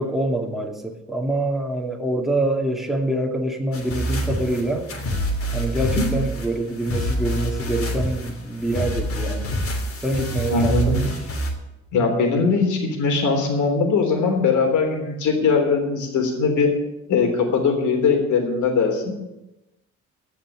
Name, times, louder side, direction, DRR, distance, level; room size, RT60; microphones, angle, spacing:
voice 1, 0.0-4.9 5.5-9.5 10.0-11.1, right 1 dB, ahead, 1 dB, 2.4 m, -25 dB
sound 1, 3.7-11.5, equal, 45° left, 3.0 m, -26 dB
voice 2, 5.7-6.1 10.5-11.0 11.9-16.7 17.1-19.1, left 4 dB, 75° left, 3 dB, 3.5 m, -20 dB
15.5 x 5.9 x 9.8 m, 0.96 s
cardioid pair, 90°, 30 cm